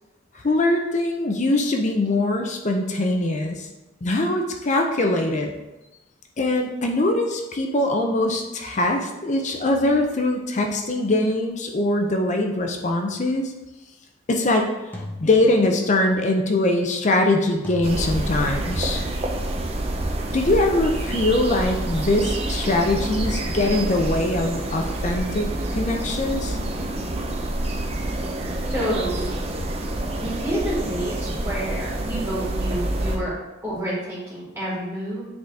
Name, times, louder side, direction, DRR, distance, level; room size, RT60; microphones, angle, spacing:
voice 1, 0.4-3.7 4.0-5.5 6.4-13.5 14.3-14.7 15.2-19.0 20.3-26.6, left 2 dB, 40° left, 3 dB, 0.5 m, -22 dB
sound 1, 13.1-13.4 14.9-16.1 17.6-18.8, left 1 dB, 10° left, 0.9 m, -39 dB
sound 2, 17.8-33.2, right 1 dB, 30° right, 0.7 m, -27 dB
voice 2, 28.7-29.4 30.2-33.3 33.6-35.3, equal, 10° right, -10 dB, 2.2 m, -29 dB
7.9 x 3.9 x 3.4 m, 1.0 s
head